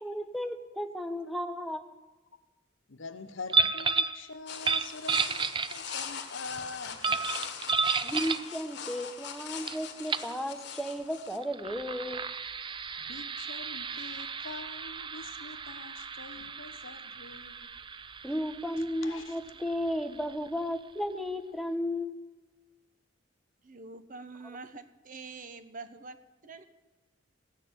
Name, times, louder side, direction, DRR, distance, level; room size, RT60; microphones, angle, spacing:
voice 1, 0.0-1.8 8.0-12.2 18.2-22.2, equal, ahead, 0.9 m, -34 dB
voice 2, 2.9-7.3 13.0-17.7 19.0-19.4, left 3 dB, 80° left, 1.0 m, -44 dB
sound 1, 3.5-4.2 4.6-6.1 7.0-8.5 9.7-9.8 10.1-10.3 11.4-20.7, right 4 dB, 25° right, 0.5 m, -33 dB
sound 2, 4.5-11.4, left 7 dB, 60° left, 1.4 m, -41 dB
voice 3, 23.6-26.6, right 3 dB, 45° right, 1.0 m, -45 dB
17.0 x 6.7 x 9.3 m
head